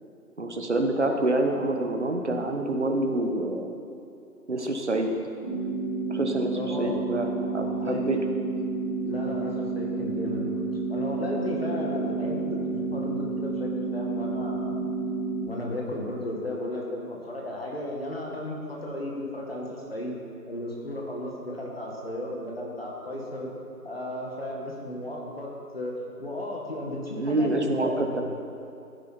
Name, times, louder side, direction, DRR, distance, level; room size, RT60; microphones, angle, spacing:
voice 1, 0.4-3.8 4.5-5.2 6.1-8.2 27.2-28.2, right 2 dB, 45° right, 4 dB, 1.3 m, -27 dB
sound 1, 5.4-15.4, right 3 dB, 5° left, 1.5 m, -30 dB
voice 2, 6.5-7.0 7.5-8.0 9.0-14.8 15.4-20.1 20.5-23.5 23.8-25.9 26.2-28.2, left 1 dB, 40° left, -2 dB, 1.9 m, -34 dB
15.5 x 10.0 x 4.4 m, 2.5 s
figure-of-eight pair, 175°, 48 cm